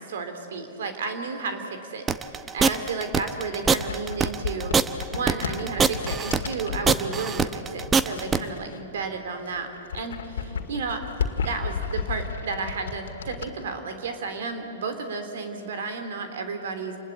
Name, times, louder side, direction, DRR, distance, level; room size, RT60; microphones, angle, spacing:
voice 1, 0.0-4.8 5.1-11.0 11.4-17.0, right 4 dB, 70° right, 7 dB, 3.3 m, -32 dB
sound 1, 2.1-8.4, right 5 dB, 20° right, 0.9 m, -22 dB
sound 2, 3.3-7.1 7.8-9.1 9.4-13.5, left 6 dB, 80° left, 2.0 m, -33 dB
28.5 x 20.0 x 8.7 m, 3.0 s
hypercardioid pair, 115°, 0 cm